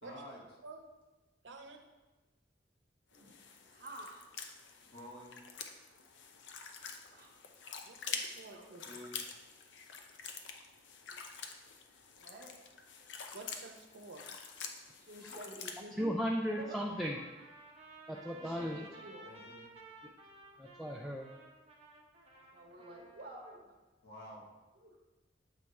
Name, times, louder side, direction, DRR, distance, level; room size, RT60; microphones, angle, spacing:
voice 1, 0.0-0.4 4.9-5.4 8.8-9.2 18.5-18.8 19.2-19.6 24.0-24.5, left 1 dB, 60° left, -4 dB, 1.6 m, -50 dB
voice 2, 1.4-1.8 7.8-8.8 13.3-14.2, right 3 dB, 85° right, 4 dB, 0.7 m, -50 dB
sound 1, 3.1-15.8, left 6 dB, 80° left, 0.6 m, -47 dB
voice 3, 3.7-4.2 7.1-7.4 8.4-8.7 12.2-12.6 15.0-16.2 16.6-16.9 18.3-19.3 22.3-23.7 24.8-25.0, right 1 dB, 60° right, 1 dB, 1.0 m, -50 dB
voice 4, 16.0-17.2 18.1-18.8 20.6-21.3, equal, ahead, -2 dB, 0.3 m, -35 dB
Trumpet, 16.5-23.6, right 2 dB, 35° right, 0.8 m, -56 dB
7.3 x 3.5 x 4.1 m, 1.2 s
head